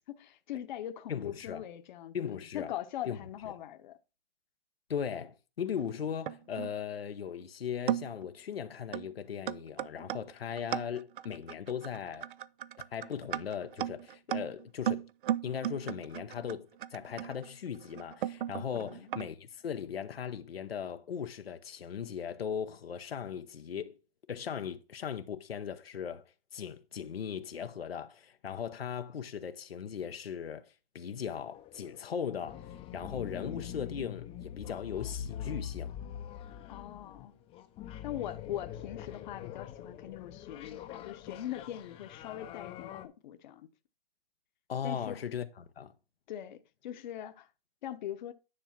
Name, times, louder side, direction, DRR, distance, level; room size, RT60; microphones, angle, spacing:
voice 1, 0.1-4.0 18.7-19.1 36.7-37.3 38.0-43.7 44.8-45.2 46.3-47.5 47.8-48.3, left 11 dB, 50° left, 1.0 m, -41 dB
voice 2, 1.1-1.7 2.1-2.7 3.1-3.2 4.9-12.3 12.9-15.0 15.4-24.0 24.3-26.2 26.5-30.7 30.9-35.9 44.7-45.9, left 7 dB, 85° left, 0.9 m, -38 dB
sound 1, 5.8-6.7 7.4-7.5 7.9-8.3 8.9-9.1 9.5-19.3, right 11 dB, 60° right, 0.5 m, -36 dB
sound 2, 31.4-43.1, left 9 dB, 20° left, 0.6 m, -44 dB
9.9 x 3.6 x 5.8 m
hypercardioid pair, 135°, 29 cm